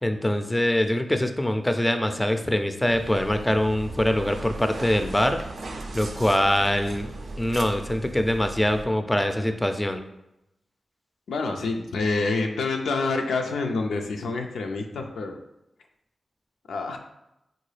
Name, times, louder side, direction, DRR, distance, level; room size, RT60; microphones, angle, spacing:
voice 1, 0.0-5.4 5.9-7.1 7.4-10.0, left 1 dB, 15° left, 7 dB, 0.4 m, -23 dB
sound 1, 2.9-8.9, right 2 dB, 65° right, 0.4 m, -38 dB
voice 2, 11.3-15.4 16.7-17.0, left 3 dB, 90° left, 3 dB, 0.4 m, -27 dB
3.7 x 2.3 x 3.2 m, 0.88 s
cardioid pair, 45°, 0 cm